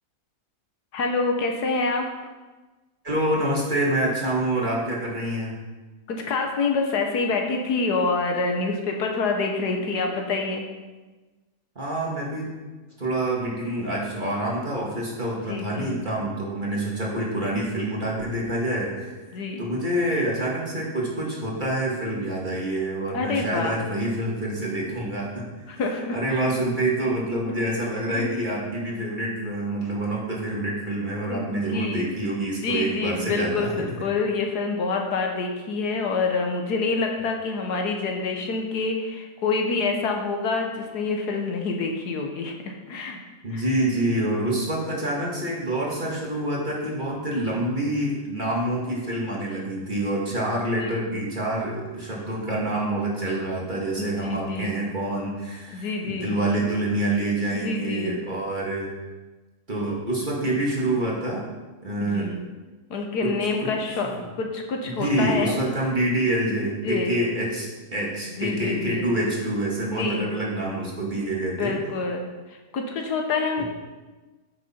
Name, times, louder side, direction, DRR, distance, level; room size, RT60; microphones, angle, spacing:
voice 1, 0.9-2.1 6.1-10.7 15.5-16.0 19.3-19.6 23.1-23.7 25.7-26.6 28.2-28.3 31.3-32.1 32.6-43.2 43.5-43.6 50.8-51.0 54.0-54.7 55.7-56.3 57.6-58.2 62.0-62.4 62.9-65.5 66.8-67.1 68.4-69.0 70.0-70.3 71.6-72.2 72.7-73.6, left 4 dB, 75° left, 2 dB, 1.6 m, -27 dB
voice 2, 3.0-5.6 11.8-12.5 13.0-25.5 26.1-33.7 43.4-58.9 59.7-61.5 61.8-62.3 63.2-64.3 64.8-71.8 73.6-73.7, right 1 dB, 30° right, -4 dB, 1.9 m, -27 dB
9.3 x 6.5 x 4.4 m, 1.2 s
omnidirectional pair, 1.7 m